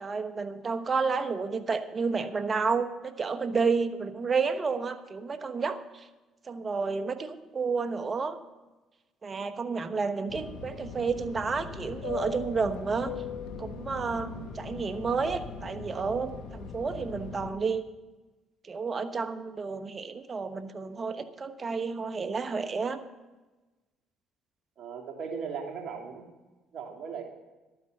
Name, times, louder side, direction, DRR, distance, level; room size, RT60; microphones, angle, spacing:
voice 1, 0.0-5.8 6.5-8.4 9.2-13.1 13.6-17.8 18.7-23.0, right 5 dB, 35° right, 10 dB, 1.1 m, -31 dB
Fixed-wing aircraft airplane, 10.3-17.5, left 5 dB, 75° left, 1.2 m, -40 dB
voice 2, 24.8-26.2 26.7-27.2, right 6 dB, 55° right, 1 dB, 2.8 m, -37 dB
12.0 x 9.3 x 6.6 m, 1.2 s
supercardioid pair, 65°, 0 cm